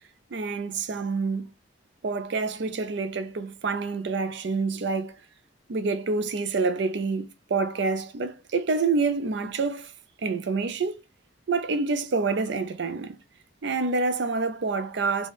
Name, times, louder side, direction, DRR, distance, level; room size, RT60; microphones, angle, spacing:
voice 1, 0.3-1.5 2.0-5.2 5.7-9.9 10.2-11.0 11.5-13.2 13.6-15.3, right 4 dB, 65° right, 0.5 m, -27 dB
4.0 x 2.3 x 3.4 m
head